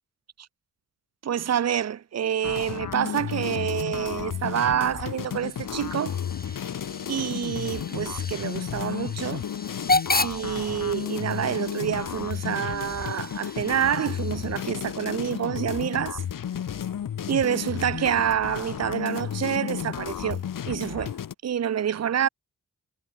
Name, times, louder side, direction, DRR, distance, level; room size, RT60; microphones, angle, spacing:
voice 1, 1.2-6.2 7.1-9.4 10.2-16.2 17.3-20.4 20.7-21.2 21.4-22.3, right 9 dB, 55° right, 0.7 m, -27 dB
sound 1, 2.4-21.3, left 9 dB, 80° left, 1.8 m, -33 dB
sound 2, 3.3-6.6, right 8 dB, 80° right, 5.9 m, -52 dB
Hiss / Train / Alarm, 5.2-14.8, left 3 dB, 30° left, 3.5 m, -33 dB
cardioid pair, 50°, 32 cm